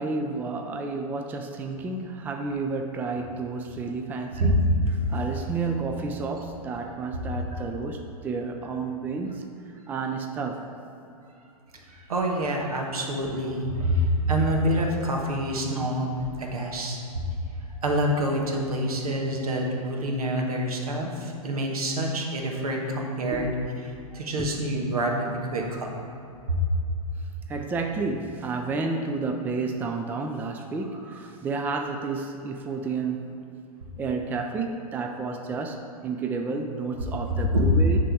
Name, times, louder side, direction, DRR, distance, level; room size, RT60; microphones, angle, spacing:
voice 1, 0.0-4.5 5.1-9.5 9.9-10.7 23.3-23.5 23.9-24.0 24.4-24.5 27.5-33.3 34.0-38.0, right 4 dB, 10° right, 4 dB, 0.4 m, -31 dB
voice 2, 11.9-16.1 16.4-17.2 17.8-23.5 24.1-25.9 26.5-26.6 37.3-37.7, equal, 75° right, 0 dB, 1.4 m, -26 dB
10.0 x 3.6 x 4.7 m, 2.8 s
hypercardioid pair, 115°, 19 cm